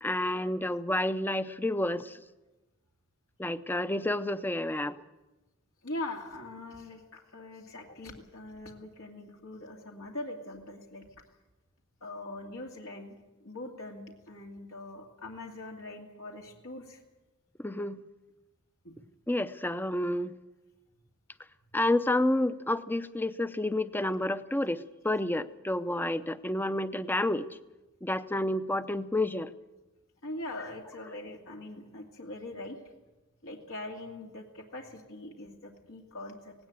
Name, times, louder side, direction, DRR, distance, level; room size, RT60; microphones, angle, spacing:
voice 1, 0.0-2.2 3.4-5.0 17.6-18.0 19.3-20.3 21.7-27.6 28.0-29.5, left 1 dB, 10° left, 13 dB, 0.6 m, -30 dB
voice 2, 5.8-11.1 12.0-13.1 13.4-17.0 18.8-19.0 30.2-32.8 33.4-36.5, left 2 dB, 80° left, 0 dB, 2.4 m, -42 dB
18.0 x 17.5 x 8.9 m, 1.1 s
head